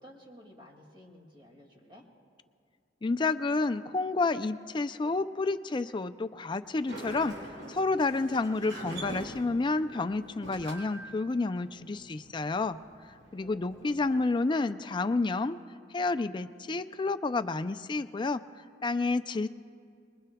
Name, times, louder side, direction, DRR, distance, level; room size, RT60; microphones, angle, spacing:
voice 1, 0.0-2.0 13.4-14.0, equal, 25° right, 0 dB, 2.3 m, -53 dB
voice 2, 3.0-7.4 7.7-12.8 13.3-15.6 15.9-18.4 18.8-19.5, left 3 dB, 25° left, 10 dB, 0.4 m, -30 dB
Sliding door, 6.6-14.2, right 1 dB, 80° right, 3.3 m, -45 dB
26.0 x 21.0 x 2.3 m, 2.3 s
head